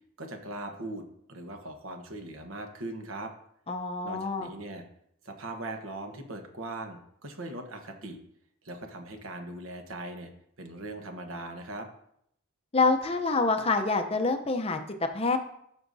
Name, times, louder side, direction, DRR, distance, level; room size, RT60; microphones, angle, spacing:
voice 1, 0.2-3.3 4.0-4.8 5.2-8.2 8.6-10.3 10.6-11.9, right 2 dB, 60° right, 5 dB, 1.1 m, -40 dB
voice 2, 3.7-4.5 12.7-14.8 15.1-15.4, left 3 dB, 25° left, 6 dB, 0.6 m, -26 dB
12.5 x 6.4 x 2.7 m, 0.73 s
head